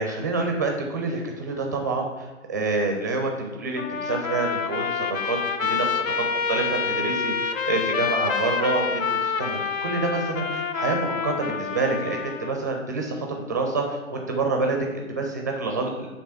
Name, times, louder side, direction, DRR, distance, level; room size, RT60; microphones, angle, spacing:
voice 1, 0.0-6.0 6.5-16.1, right 3 dB, 15° right, 2 dB, 0.4 m, -27 dB
Trumpet, 3.8-12.6, left 6 dB, 80° left, 0.7 m, -27 dB
7.9 x 3.3 x 5.4 m, 1.2 s
figure-of-eight pair, 130°, 40 cm